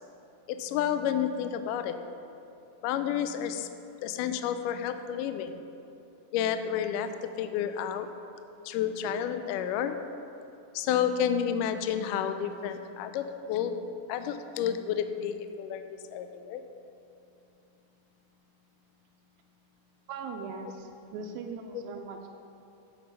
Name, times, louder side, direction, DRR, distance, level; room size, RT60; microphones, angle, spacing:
voice 1, 0.5-2.0 2.8-3.7 4.0-5.5 6.3-7.1 7.4-8.1 8.7-10.0 10.8-13.8 14.1-15.9 16.1-16.6, left 9 dB, 85° left, 8 dB, 1.9 m, -30 dB
voice 2, 20.1-22.3, right 4 dB, 85° right, 2 dB, 2.4 m, -40 dB
14.5 x 5.4 x 5.4 m, 2.7 s
omnidirectional pair, 4.3 m